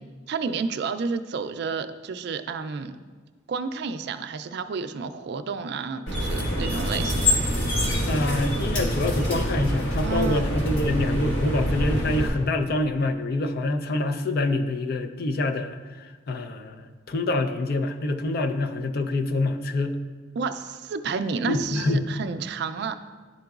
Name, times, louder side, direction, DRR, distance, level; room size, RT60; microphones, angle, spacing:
voice 1, 0.3-3.0 3.5-7.4 10.0-10.5 20.4-23.0, right 5 dB, 60° right, 9 dB, 0.3 m, -30 dB
sound 1, 6.1-12.3, equal, 75° left, 1.6 m, -25 dB
voice 2, 8.1-20.0 21.5-22.1, left 2 dB, 50° left, 7 dB, 0.4 m, -26 dB
11.0 x 3.8 x 2.3 m, 1.4 s
head